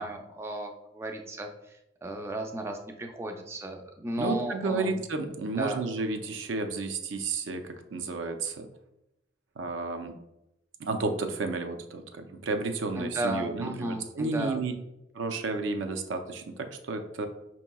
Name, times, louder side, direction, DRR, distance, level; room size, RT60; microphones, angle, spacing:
voice 1, 0.0-5.0 5.6-5.9 13.0-14.6, right 1 dB, 15° right, 3 dB, 0.3 m, -35 dB
voice 2, 4.2-8.7 9.6-10.1 10.8-14.7 15.1-17.3, right 3 dB, 85° right, 6 dB, 0.5 m, -32 dB
5.2 x 2.9 x 2.2 m, 0.87 s
head